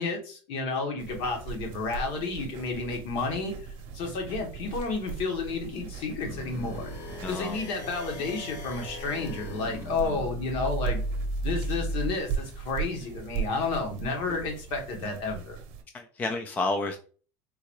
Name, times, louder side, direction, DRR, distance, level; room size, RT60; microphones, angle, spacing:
voice 1, 0.0-3.5 3.9-6.9 7.3-11.0 11.4-15.6, left 3 dB, 55° left, 1.2 m, -31 dB
sound 1, 1.0-15.8, right 6 dB, 60° right, 0.7 m, -39 dB
sound 2, 6.2-12.1, equal, 85° left, 1.3 m, -35 dB
voice 2, 7.2-7.6 15.9-17.0, left 2 dB, 15° left, 0.3 m, -30 dB
3.7 x 2.2 x 3.1 m
cardioid pair, 145°, 10 cm